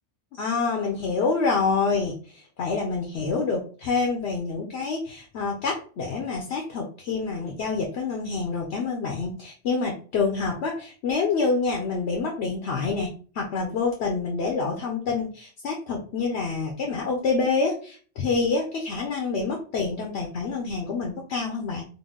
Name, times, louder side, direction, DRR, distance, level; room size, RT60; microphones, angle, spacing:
voice 1, 0.3-21.9, left 4 dB, 65° left, 1 dB, 0.9 m, -27 dB
3.8 x 2.2 x 3.6 m, 0.41 s
omnidirectional pair, 1.2 m